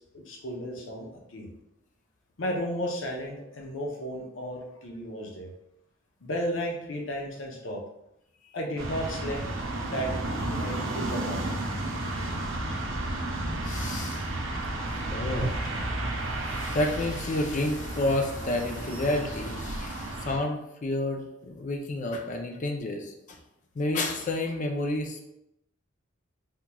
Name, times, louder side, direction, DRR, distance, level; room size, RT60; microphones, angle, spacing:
voice 1, 0.0-1.5 2.4-5.5 6.2-7.8 8.5-9.4 9.8-10.1 10.5-11.5, equal, 80° left, 1 dB, 0.7 m, -34 dB
sound 1, 8.8-20.4, right 1 dB, 85° right, 0.6 m, -32 dB
voice 2, 13.6-14.3 14.9-15.6 16.5-23.4 23.8-25.3, left 1 dB, 40° left, 4 dB, 0.4 m, -30 dB
3.6 x 2.9 x 2.2 m, 0.81 s
head